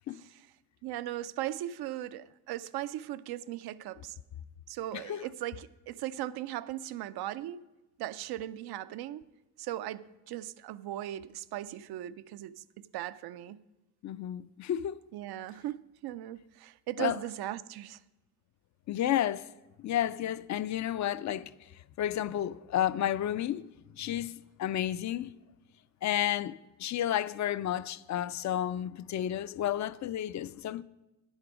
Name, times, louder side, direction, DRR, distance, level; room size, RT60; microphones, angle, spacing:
voice 1, 0.8-4.2 4.7-7.6 8.0-9.3 9.6-13.6 15.1-18.0, right 13 dB, 75° right, 0.5 m, -38 dB
voice 2, 4.9-5.3 14.0-15.0 17.0-17.2 18.9-19.5 19.8-21.5 22.0-23.6 24.0-24.3 24.6-25.3 26.0-30.8, left 11 dB, 50° left, 0.4 m, -31 dB
9.8 x 8.0 x 5.0 m
cardioid pair, 70°, 39 cm